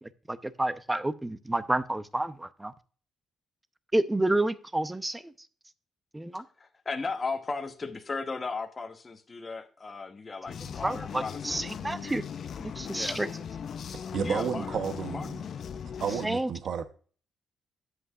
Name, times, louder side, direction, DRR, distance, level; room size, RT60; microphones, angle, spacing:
voice 1, 0.0-2.7 3.9-5.3 6.1-6.4 10.8-12.2 12.6-13.3 16.2-16.5, right 1 dB, 10° right, 0.7 m, -29 dB
voice 2, 6.3-11.8 12.9-13.3 14.2-14.8 15.1-15.3, left 4 dB, 30° left, 1.0 m, -36 dB
sound 1, 10.5-16.3, left 7 dB, 60° left, 0.5 m, -38 dB
voice 3, 13.9-15.4 16.0-16.9, right 7 dB, 60° right, 0.8 m, -32 dB
11.0 x 7.9 x 2.4 m
cardioid pair, 90°, 0 cm